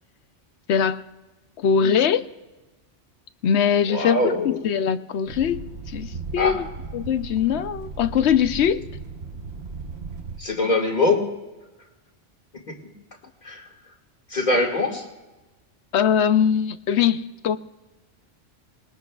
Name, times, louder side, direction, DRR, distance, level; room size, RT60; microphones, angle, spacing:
voice 1, 0.7-1.1 1.6-2.3 3.4-6.6 6.9-8.9 15.9-17.6, left 8 dB, 70° left, 0.9 m, -22 dB
voice 2, 3.9-4.6 6.4-6.6 10.4-11.4 12.5-12.8 13.4-13.7 14.3-15.1, left 2 dB, 40° left, 2.1 m, -23 dB
sound 1, 5.3-10.4, right 4 dB, 65° right, 1.2 m, -36 dB
24.5 x 20.5 x 2.3 m
omnidirectional pair, 1.2 m